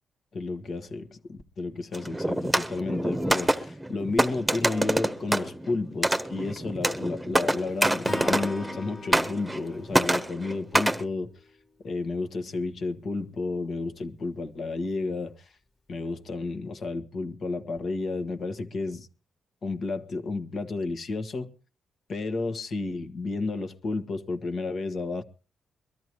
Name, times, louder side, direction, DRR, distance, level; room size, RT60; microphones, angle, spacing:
voice 1, 0.3-11.3 11.8-15.6 15.9-19.1 19.6-21.5 22.1-25.2, left 3 dB, 55° left, 1.5 m, -32 dB
sound 1, 1.9-8.8 9.1-9.7 9.9-11.0, right 1 dB, 10° right, 1.1 m, -26 dB
Acoustic guitar / Strum, 8.0-11.3, left 2 dB, 35° left, 2.0 m, -40 dB
22.5 x 13.5 x 3.1 m
cardioid pair, 95°, 0 cm